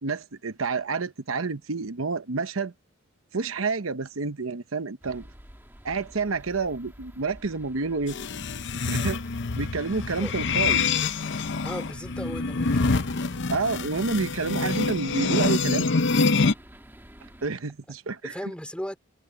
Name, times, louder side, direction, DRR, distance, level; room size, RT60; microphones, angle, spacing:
voice 1, 0.0-2.7 3.3-5.3 5.8-8.2 8.9-9.2 9.5-10.8 13.5-15.9 17.4-18.3, right 4 dB, 85° right, 0.9 m, -29 dB
sound 1, 5.0-17.5, equal, 10° right, 2.9 m, -49 dB
sound 2, 8.1-16.5, left 4 dB, 60° left, 0.7 m, -26 dB
voice 2, 11.6-12.9 18.2-19.0, equal, 5° left, 3.0 m, -36 dB
head